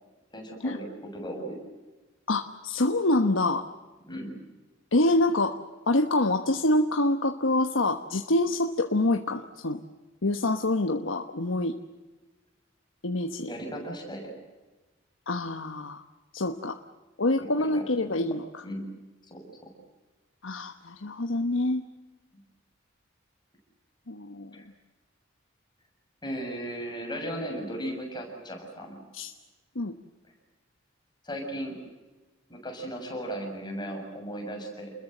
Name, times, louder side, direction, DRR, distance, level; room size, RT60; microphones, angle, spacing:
voice 1, 0.3-1.6 4.1-4.3 13.5-14.3 17.6-18.2 18.6-18.9 19.2-19.7 24.5-24.7 26.2-29.0 31.2-31.8 32.5-34.9, equal, 20° left, 2 dB, 7.2 m, -36 dB
voice 2, 2.3-3.7 4.9-5.6 5.9-9.8 10.2-11.7 13.0-13.5 15.3-16.0 16.3-16.8 17.2-18.6 20.4-21.8 24.1-24.5 29.1-29.3 29.7-29.9, left 2 dB, 75° left, 6 dB, 1.2 m, -26 dB
29.5 x 21.5 x 7.9 m, 1.2 s
head